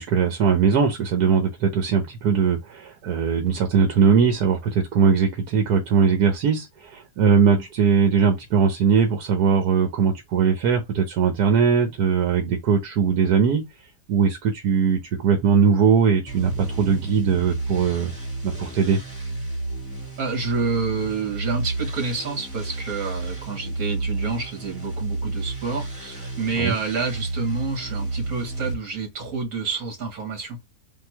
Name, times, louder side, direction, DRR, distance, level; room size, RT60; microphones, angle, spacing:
voice 1, 0.0-13.6 14.1-18.1 18.4-19.0 26.6-26.8, right 6 dB, 90° right, 1.4 m, -20 dB
sound 1, 16.3-28.7, right 2 dB, 5° right, 1.8 m, -31 dB
voice 2, 20.2-30.6, right 4 dB, 70° right, 2.0 m, -28 dB
3.7 x 2.8 x 4.5 m
omnidirectional pair, 1.6 m